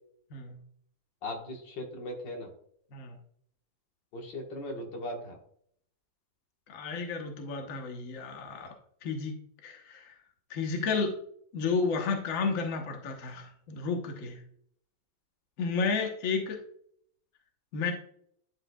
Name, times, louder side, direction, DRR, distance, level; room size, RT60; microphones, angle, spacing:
voice 1, 1.2-2.5 4.1-5.4, left 1 dB, 80° left, 1 dB, 2.1 m, -38 dB
voice 2, 6.7-8.7 9.0-10.2 10.5-11.1 11.5-14.4 15.6-16.6 17.7-17.9, left 4 dB, 50° left, 3 dB, 1.4 m, -32 dB
11.0 x 4.9 x 2.3 m, 0.64 s
omnidirectional pair, 1.9 m